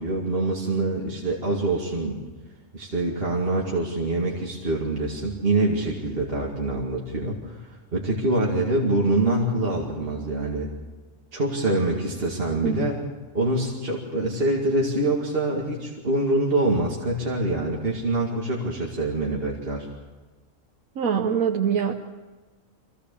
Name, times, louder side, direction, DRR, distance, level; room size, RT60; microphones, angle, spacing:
voice 1, 0.0-2.2 2.7-10.7 11.3-13.0 13.3-19.9, right 2 dB, 45° right, -2 dB, 2.5 m, -25 dB
voice 2, 21.0-21.9, right 7 dB, 90° right, 3 dB, 1.4 m, -24 dB
24.0 x 17.0 x 7.0 m, 1.3 s
omnidirectional pair, 1.4 m